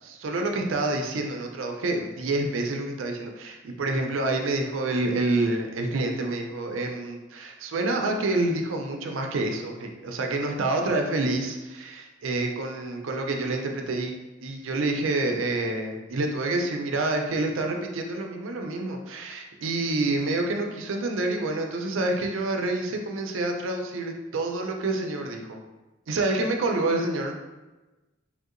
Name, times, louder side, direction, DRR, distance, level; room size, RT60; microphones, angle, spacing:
voice 1, 0.0-14.1 14.4-25.6 26.1-27.4, right 2 dB, 75° right, 3 dB, 0.4 m, -28 dB
3.5 x 2.7 x 2.5 m, 1.1 s
head